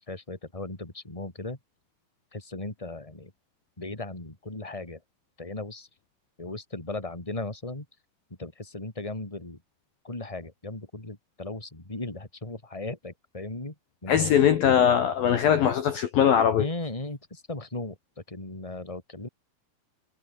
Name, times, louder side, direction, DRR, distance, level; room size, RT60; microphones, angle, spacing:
voice 1, 0.1-1.6 2.3-3.3 3.8-5.0 5.4-5.9 6.4-7.9 8.4-9.6 10.0-13.7 14.0-14.3 16.6-18.0 18.3-19.3, left 2 dB, 5° left, 4.1 m, -37 dB
voice 2, 14.1-16.7, left 9 dB, 60° left, 3.2 m, -21 dB
omnidirectional pair, 5.2 m